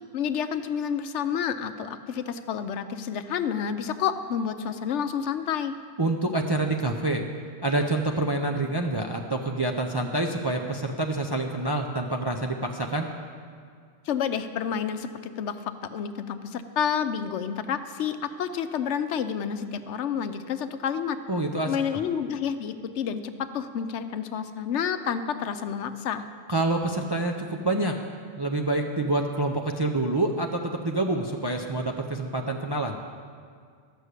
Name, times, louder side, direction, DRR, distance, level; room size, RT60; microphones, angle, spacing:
voice 1, 0.1-5.8 14.0-21.2 21.6-26.2, left 7 dB, 75° left, 10 dB, 0.9 m, -29 dB
voice 2, 6.0-7.2 7.6-13.1 21.3-21.7 26.5-27.9 28.4-33.0, right 2 dB, 30° right, 2 dB, 0.4 m, -27 dB
12.5 x 6.3 x 8.2 m, 2.1 s
omnidirectional pair, 1.2 m